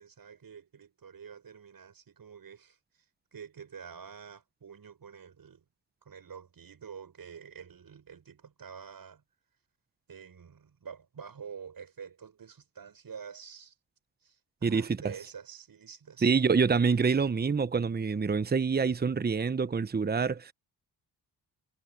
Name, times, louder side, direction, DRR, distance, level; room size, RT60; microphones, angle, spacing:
voice 1, 0.0-2.8 3.3-5.6 6.0-9.2 10.1-13.7 14.2-16.3, right 7 dB, 55° right, 7.7 m, -47 dB
voice 2, 14.6-15.1 16.2-20.5, right 5 dB, 20° right, 1.0 m, -26 dB
cardioid pair, 70°, 42 cm